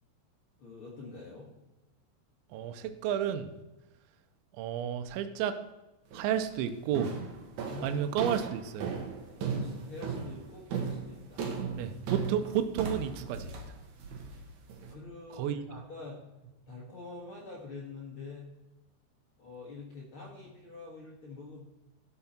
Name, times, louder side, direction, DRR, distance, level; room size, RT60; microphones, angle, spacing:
voice 1, 0.6-1.5 7.7-8.0 9.4-11.5 14.9-16.2 16.7-18.5 19.4-21.6, left 4 dB, 85° left, -3 dB, 1.1 m, -45 dB
voice 2, 2.5-3.5 4.5-5.6 6.1-7.1 7.8-8.9 11.8-13.6 15.3-15.6, right 9 dB, 85° right, 9 dB, 3.1 m, -31 dB
sound 1, 6.1-6.4 6.9-14.9, right 5 dB, 65° right, 1.9 m, -37 dB
12.5 x 6.9 x 4.3 m, 1.0 s
omnidirectional pair, 5.3 m